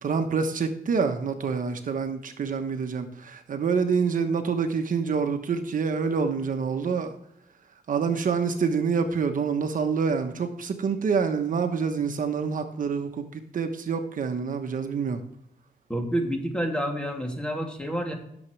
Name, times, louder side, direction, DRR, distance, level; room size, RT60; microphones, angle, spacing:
voice 1, 0.0-7.1 7.9-15.2, right 5 dB, 65° right, 6 dB, 1.1 m, -27 dB
voice 2, 15.9-18.1, equal, 5° left, 2 dB, 2.7 m, -28 dB
17.0 x 7.2 x 3.3 m, 0.74 s
cardioid pair, 85°, 15 cm